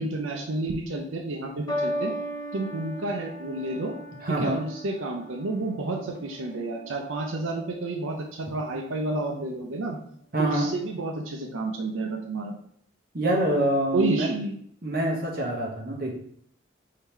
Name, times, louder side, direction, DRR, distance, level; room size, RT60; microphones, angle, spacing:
voice 1, 0.0-2.1 2.5-3.9 4.3-10.0 10.4-12.5 13.9-14.6, right 2 dB, 85° right, 1 dB, 0.5 m, -30 dB
sound 1, 1.7-8.2 9.0-9.5, equal, 20° left, 0.7 m, -37 dB
voice 2, 4.2-4.6 10.3-10.7 13.1-14.3 14.8-16.2, right 1 dB, 45° right, 0 dB, 0.8 m, -25 dB
3.6 x 2.8 x 4.5 m, 0.64 s
head